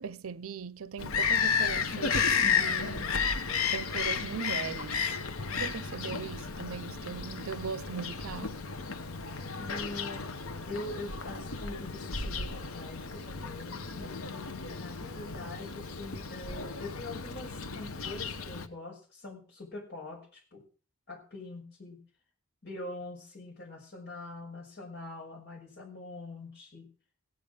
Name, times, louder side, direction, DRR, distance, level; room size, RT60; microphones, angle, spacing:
voice 1, 0.0-3.1 3.7-5.2 5.5-8.6, right 6 dB, 75° right, 0.5 m, -39 dB
Bird vocalization bird call bird song, 1.0-18.7, left 5 dB, 85° left, 1.0 m, -33 dB
voice 2, 9.6-10.4 10.7-20.6 21.1-22.0 22.6-26.9, left 2 dB, 55° left, 5.7 m, -43 dB
16.5 x 8.6 x 5.2 m
head